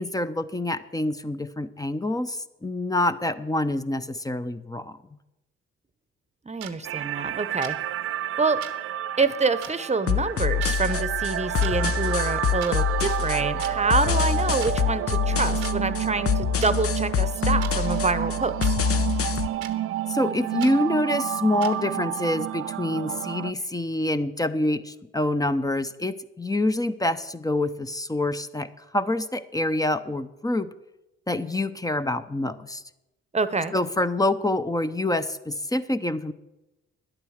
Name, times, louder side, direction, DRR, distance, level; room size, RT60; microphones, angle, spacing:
voice 1, 0.0-5.0 20.1-30.7 31.3-32.8 33.7-36.3, left 1 dB, 10° left, 11 dB, 0.7 m, -26 dB
voice 2, 6.4-7.8 8.4-8.6 9.2-18.7 33.3-33.7, right 4 dB, 20° right, 13 dB, 0.9 m, -26 dB
sound 1, 6.6-6.7 7.6-7.8 8.6-8.7 9.6-9.7 10.6-10.8 11.5-11.7 12.6-12.7 13.6-13.7 14.6-14.7 15.6-15.7 16.6-16.7 17.6-17.7 18.6-18.7 19.6-19.7 20.6-20.7 21.6-21.7, right 11 dB, 85° right, 1.0 m, -38 dB
sound 2, 6.8-23.5, right 12 dB, 45° right, 0.4 m, -30 dB
sound 3, 10.1-19.5, left 8 dB, 50° left, 0.9 m, -26 dB
10.5 x 8.9 x 6.5 m, 0.97 s
hypercardioid pair, 55°, 30 cm